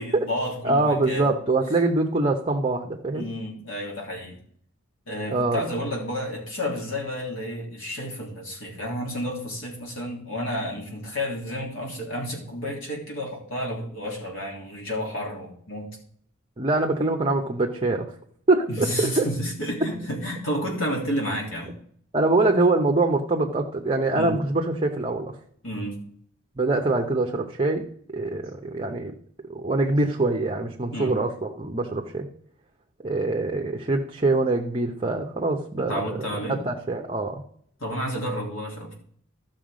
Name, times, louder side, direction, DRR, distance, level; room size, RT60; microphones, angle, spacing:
voice 1, 0.0-1.3 3.1-4.4 5.1-15.9 18.7-21.7 24.1-24.4 25.6-26.0 30.9-31.1 35.8-36.6 37.8-38.9, equal, 75° left, -1 dB, 3.3 m, -31 dB
voice 2, 0.6-3.3 5.3-5.6 16.6-18.1 18.5-19.3 22.1-25.3 26.6-27.9 28.1-29.1 29.5-32.3 33.0-36.0 36.6-37.4, right 2 dB, 30° right, 2 dB, 0.8 m, -24 dB
13.5 x 6.2 x 5.1 m, 0.63 s
head